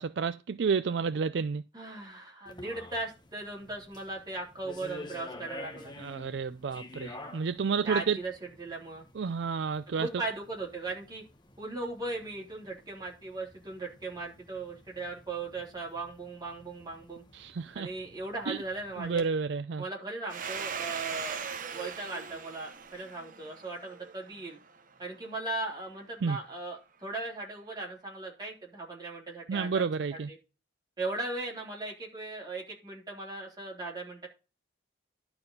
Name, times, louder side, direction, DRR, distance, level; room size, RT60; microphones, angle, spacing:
voice 1, 0.0-1.6 6.0-8.2 9.1-10.1 17.3-17.9 18.5-18.6 19.0-19.8 26.2-26.4 29.5-30.3, right 5 dB, 60° right, 0.4 m, -30 dB
voice 2, 1.7-5.9 7.8-8.3 8.6-9.0 10.0-11.2 11.6-17.2 17.7-19.2 19.8-24.6 25.0-29.8 30.1-30.4 31.0-34.3, right 2 dB, 20° right, 3.4 m, -38 dB
sound 1, 2.5-19.3, left 1 dB, 25° left, 1.1 m, -50 dB
Domestic sounds home sounds, 20.3-24.7, right 6 dB, 45° right, 0.8 m, -39 dB
11.5 x 4.4 x 5.4 m
head